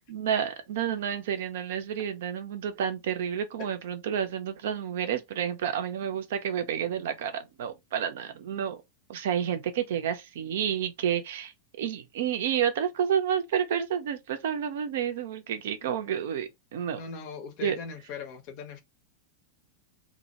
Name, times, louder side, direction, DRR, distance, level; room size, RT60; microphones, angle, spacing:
voice 1, 0.1-8.8 9.1-17.0 17.6-17.8, right 8 dB, 55° right, 0.5 m, -30 dB
voice 2, 17.0-18.8, left 6 dB, 45° left, 0.7 m, -39 dB
2.1 x 2.1 x 2.8 m
figure-of-eight pair, 90°, 0 cm